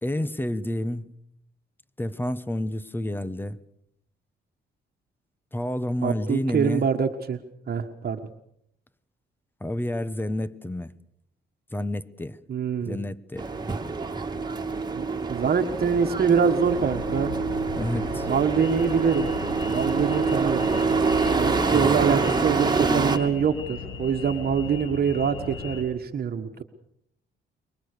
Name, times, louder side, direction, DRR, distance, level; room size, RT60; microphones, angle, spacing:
voice 1, 0.0-1.1 2.0-3.6 5.5-6.9 9.6-10.9 11.7-12.4 12.8-13.5 17.8-18.3 21.7-21.9, left 1 dB, 10° left, 1.2 m, -29 dB
voice 2, 6.0-7.4 7.7-8.2 12.5-13.0 14.9-17.3 18.3-19.3 19.7-20.7 21.4-26.6, right 6 dB, 50° right, 1.6 m, -24 dB
sound 1, 13.4-23.2, right 4 dB, 20° right, 2.5 m, -26 dB
sound 2, 16.6-25.8, left 4 dB, 85° left, 7.2 m, -37 dB
24.5 x 22.5 x 6.8 m
cardioid pair, 90°, 20 cm